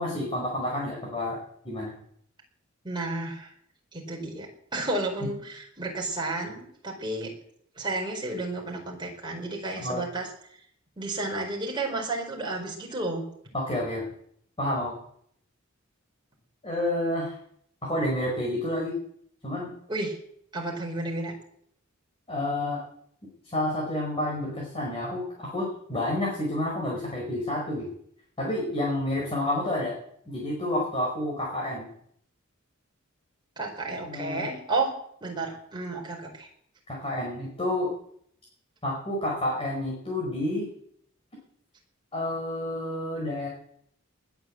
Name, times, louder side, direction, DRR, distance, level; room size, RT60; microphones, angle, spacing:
voice 1, 0.0-1.4 1.6-1.9 9.8-10.0 13.5-14.0 14.6-15.0 16.6-17.4 17.8-19.0 19.4-19.7 22.3-22.8 23.4-27.9 28.4-29.9 30.3-31.9 34.0-34.5 36.9-37.9 38.8-40.7 42.1-43.5, left 1 dB, 25° left, -3 dB, 5.4 m, -29 dB
voice 2, 2.8-3.5 3.9-7.3 7.8-10.3 11.0-13.2 19.9-20.2 20.5-21.3 33.6-34.9 35.2-36.5, right 2 dB, 20° right, 0 dB, 4.6 m, -32 dB
20.0 x 9.1 x 7.8 m, 0.68 s
head